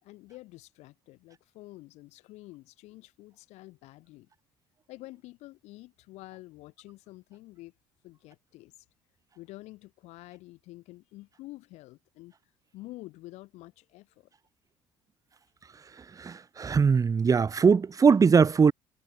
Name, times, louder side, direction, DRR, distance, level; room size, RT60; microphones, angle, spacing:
voice 1, 0.0-4.3 4.9-7.7 8.0-8.7 9.3-12.3 12.7-14.3, left 19 dB, 80° left, 4.6 m, -48 dB
voice 2, 16.2-18.7, right 5 dB, 30° right, 0.9 m, -21 dB
supercardioid pair, 80°, 11 cm